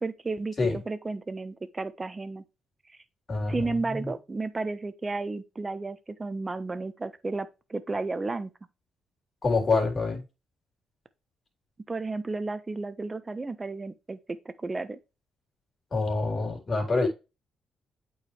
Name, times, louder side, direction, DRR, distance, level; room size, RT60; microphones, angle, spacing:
voice 1, 0.0-2.4 3.5-8.5 11.9-15.0, right 3 dB, 25° right, 1.1 m, -33 dB
voice 2, 3.3-4.1 9.4-10.2 15.9-17.1, left 3 dB, 40° left, 3.8 m, -26 dB
8.5 x 4.9 x 3.3 m
cardioid pair, 90°, 0 cm